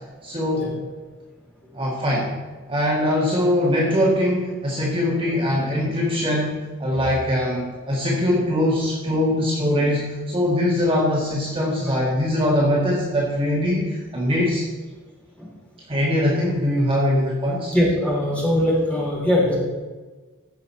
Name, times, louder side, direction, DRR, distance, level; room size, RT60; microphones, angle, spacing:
voice 1, 0.2-0.7 1.7-2.3 2.7-14.6 15.9-17.7, left 1 dB, 25° right, -4 dB, 1.7 m, -22 dB
voice 2, 17.7-19.6, left 1 dB, 5° left, -5 dB, 3.2 m, -20 dB
15.0 x 6.4 x 4.2 m, 1.3 s
head